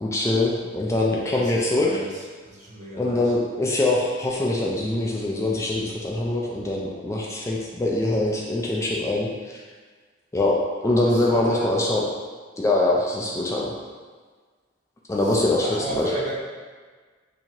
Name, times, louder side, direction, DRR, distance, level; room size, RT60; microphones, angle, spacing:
voice 1, 0.0-2.1 3.0-9.6 10.3-12.1 12.6-13.7 15.1-16.1, left 2 dB, 15° left, -3 dB, 0.3 m, -23 dB
voice 2, 1.7-2.1 2.4-3.2 11.3-11.6 15.6-16.3, right 1 dB, 40° right, -5 dB, 0.8 m, -33 dB
2.8 x 2.7 x 4.3 m, 1.5 s
head